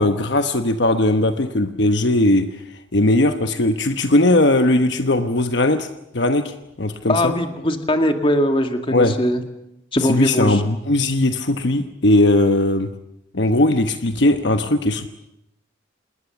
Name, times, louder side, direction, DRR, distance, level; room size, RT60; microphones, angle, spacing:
voice 1, 0.0-2.5 2.9-5.9 6.1-7.3 8.9-9.1 10.0-12.9 13.3-15.1, left 1 dB, 60° left, 8 dB, 1.1 m, -18 dB
voice 2, 7.1-9.4 9.9-10.6, left 1 dB, 25° left, 6 dB, 2.1 m, -20 dB
28.0 x 20.0 x 7.2 m, 0.85 s
head